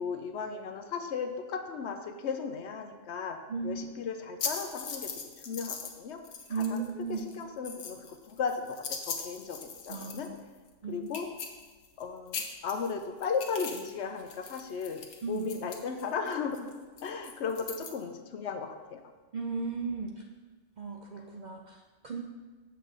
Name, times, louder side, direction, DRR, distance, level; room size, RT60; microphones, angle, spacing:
voice 1, 0.0-5.1 5.5-6.2 6.5-6.8 7.1-10.3 10.9-11.3 12.0-16.8 17.0-19.0, left 5 dB, 65° left, 7 dB, 0.9 m, -36 dB
voice 2, 3.5-3.9 6.5-7.2 9.9-10.4 10.8-11.1 15.2-15.5 19.3-20.1 20.8-21.8 22.0-22.2, right 4 dB, 55° right, 1 dB, 0.5 m, -35 dB
sound 1, 4.4-6.0 6.2-6.9 7.1-10.4 10.7-10.8 11.1-12.0 12.3-13.9 14.2-17.9, left 6 dB, 85° left, 1.2 m, -40 dB
7.6 x 6.6 x 3.8 m, 1.4 s
omnidirectional pair, 1.3 m